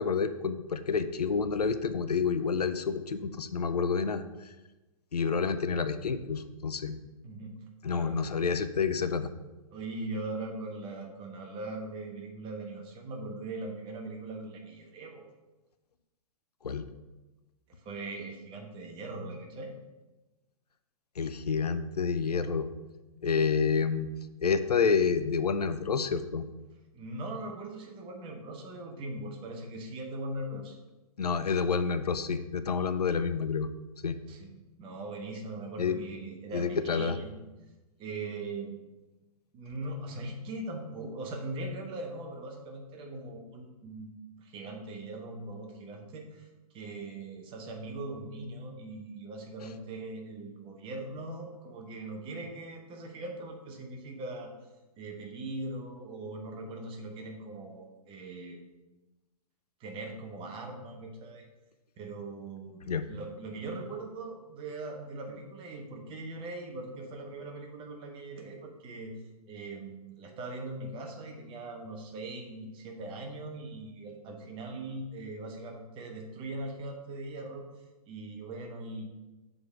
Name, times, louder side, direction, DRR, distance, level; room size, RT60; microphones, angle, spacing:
voice 1, 0.0-4.5 5.1-7.0 7.8-9.3 16.6-16.8 21.2-22.7 23.2-24.1 24.4-26.5 31.2-33.7 34.0-34.2 35.8-36.0 36.5-37.2 62.9-63.0, left 5 dB, 90° left, 11 dB, 0.5 m, -29 dB
voice 2, 7.2-8.2 9.7-15.2 17.7-19.7 26.9-30.7 34.3-34.5 34.8-37.3 38.0-38.8 39.5-44.1 44.4-54.5 55.0-58.6 59.8-61.5 62.0-62.8 63.1-69.1 69.5-77.7 78.1-79.0, right 2 dB, 25° right, 2 dB, 1.1 m, -40 dB
6.8 x 3.9 x 4.7 m, 1.1 s
hypercardioid pair, 115°, 19 cm